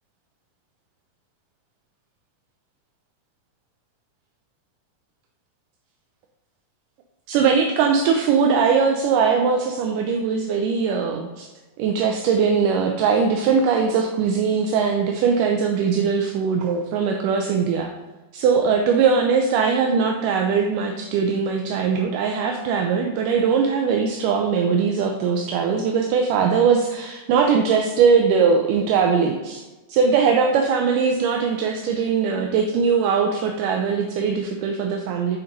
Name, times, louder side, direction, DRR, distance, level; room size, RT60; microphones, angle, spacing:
voice 1, 7.3-11.5 11.8-17.9 18.3-29.6 29.9-35.4, right 6 dB, 80° right, 3 dB, 2.1 m, -20 dB
8.6 x 4.0 x 5.2 m, 1.1 s
omnidirectional pair, 3.8 m